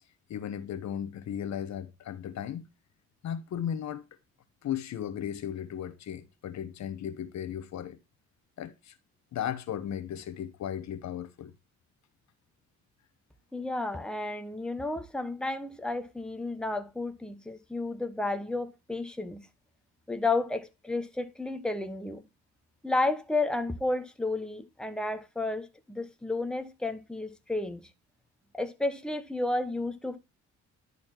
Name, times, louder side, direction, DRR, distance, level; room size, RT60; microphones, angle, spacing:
voice 1, 0.3-2.6 3.2-4.0 4.6-8.0 8.6-9.0 9.3-11.5, left 9 dB, 65° left, 1.0 m, -36 dB
voice 2, 13.5-19.4 20.1-22.2 22.8-27.8 28.5-30.2, left 2 dB, 5° left, 1.1 m, -32 dB
11.0 x 4.2 x 4.5 m
cardioid pair, 90°, 30 cm